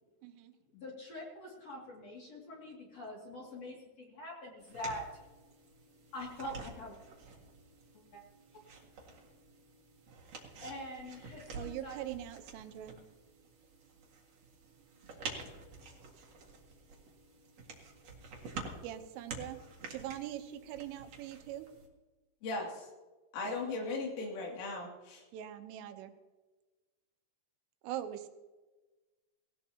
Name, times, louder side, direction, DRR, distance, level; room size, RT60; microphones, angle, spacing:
voice 1, 0.2-0.5 11.6-13.0 18.8-19.6 19.9-21.7 23.5-23.6 25.3-26.1 27.8-28.3, right 12 dB, 85° right, 8 dB, 3.5 m, -42 dB
voice 2, 0.7-5.0 6.1-7.0 7.9-8.2 10.6-12.0, left 1 dB, 40° left, -3 dB, 2.9 m, -44 dB
sound 1, 4.6-21.9, right 4 dB, 55° right, 1.9 m, -49 dB
voice 3, 22.4-22.9 23.3-25.2, left 3 dB, 80° left, -1 dB, 5.3 m, -38 dB
18.5 x 18.0 x 2.9 m, 1.2 s
omnidirectional pair, 5.6 m